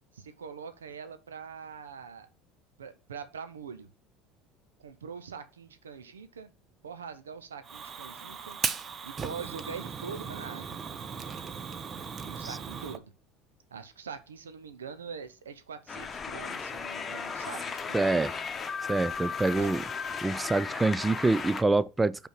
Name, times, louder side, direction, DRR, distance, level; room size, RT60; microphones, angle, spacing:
voice 1, 0.1-2.3 2.8-3.9 4.8-6.5 6.8-8.6 9.0-10.8 12.2-13.1 13.7-18.2 19.6-19.7, right 6 dB, 90° right, 0.8 m, -43 dB
Fire, 7.6-13.0, right 6 dB, 35° right, 0.8 m, -37 dB
sound 1, 15.9-21.6, left 5 dB, 30° left, 1.0 m, -36 dB
voice 2, 17.9-18.3 18.9-19.8 20.2-22.3, right 3 dB, 15° right, 0.3 m, -26 dB
5.5 x 4.4 x 5.9 m
hypercardioid pair, 75°, 0 cm